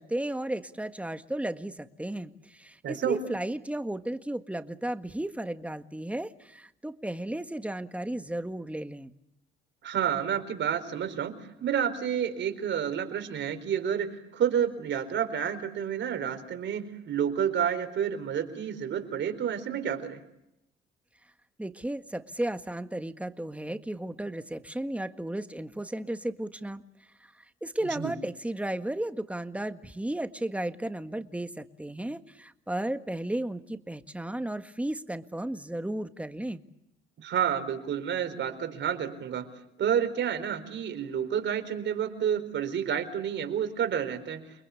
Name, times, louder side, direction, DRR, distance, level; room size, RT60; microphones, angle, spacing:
voice 1, 0.0-9.1 21.6-26.8 27.2-36.6, right 1 dB, 5° right, 9 dB, 1.7 m, -34 dB
voice 2, 2.8-3.2 9.8-20.2 27.9-28.1 37.2-44.5, right 8 dB, 65° right, 8 dB, 4.4 m, -30 dB
29.5 x 21.0 x 8.4 m, 0.82 s
cardioid pair, 90°, 20 cm